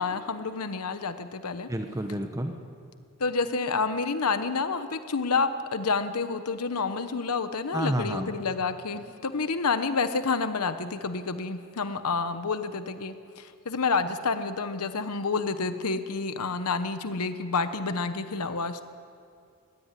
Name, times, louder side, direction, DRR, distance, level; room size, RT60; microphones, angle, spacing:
voice 1, 0.0-1.7 3.2-18.9, left 4 dB, 85° left, 10 dB, 1.0 m, -29 dB
voice 2, 1.7-2.5 7.7-8.3, right 1 dB, 15° right, 5 dB, 1.0 m, -29 dB
21.0 x 16.0 x 9.8 m, 2.3 s
head